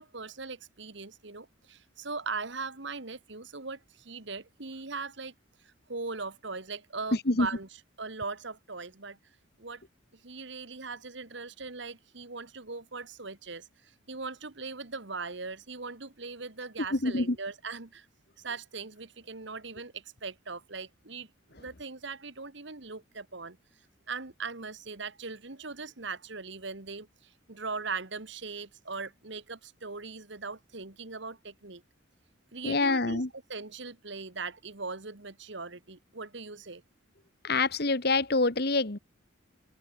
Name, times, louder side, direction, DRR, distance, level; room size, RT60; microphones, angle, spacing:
voice 1, 0.0-5.3 5.9-9.2 9.6-9.8 10.2-13.7 14.1-18.1 18.4-21.3 21.5-23.6 24.1-27.1 27.5-31.8 32.5-36.8, right 4 dB, 60° right, 1.8 m, -40 dB
voice 2, 16.9-17.3 32.6-33.3 37.4-39.0, left 3 dB, 50° left, 1.5 m, -26 dB
open air
head